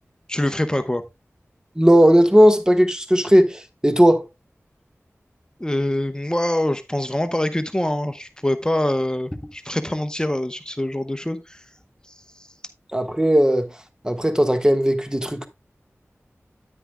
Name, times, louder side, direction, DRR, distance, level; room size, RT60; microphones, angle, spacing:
voice 1, 0.3-1.0 5.6-11.6 12.1-12.2, left 1 dB, 15° left, 0.8 m, -24 dB
voice 2, 1.8-4.2 12.9-13.7 14.0-15.5, equal, 15° right, 1.3 m, -16 dB
9.7 x 9.6 x 2.2 m
wide cardioid pair, 55°, 5 cm